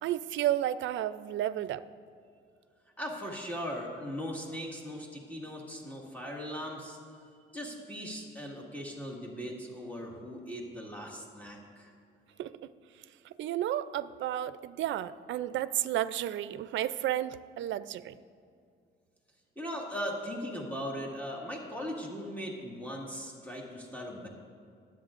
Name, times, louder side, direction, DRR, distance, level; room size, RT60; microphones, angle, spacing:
voice 1, 0.0-1.8 12.4-12.7 13.2-18.1, right 12 dB, 70° right, 15 dB, 0.4 m, -32 dB
voice 2, 3.0-7.0 7.5-11.9 19.6-24.3, equal, 10° left, -2 dB, 1.9 m, -39 dB
22.0 x 7.9 x 2.5 m, 2.3 s
cardioid pair, 90°, 20 cm